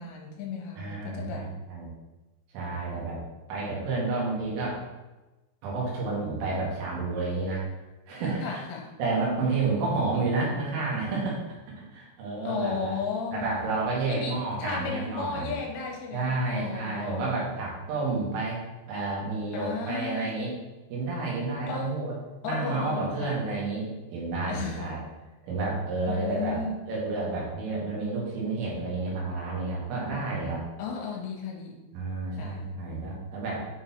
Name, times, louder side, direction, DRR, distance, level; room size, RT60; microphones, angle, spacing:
voice 1, 0.0-1.5 8.4-8.9 12.4-13.5 14.1-17.2 19.5-20.4 21.7-22.0 22.4-23.4 24.5-24.9 26.1-26.8 30.8-31.8 32.3-32.7, left 5 dB, 80° left, 1 dB, 3.4 m, -34 dB
voice 2, 0.8-1.9 2.5-3.2 3.5-4.8 5.6-7.7 8.1-8.6 9.0-13.0 13.3-15.5 16.1-20.5 20.9-22.2 22.4-25.0 25.4-30.6 31.9-33.6, right 3 dB, 80° right, -4 dB, 4.5 m, -30 dB
9.1 x 4.0 x 4.3 m, 1.1 s
omnidirectional pair, 5.7 m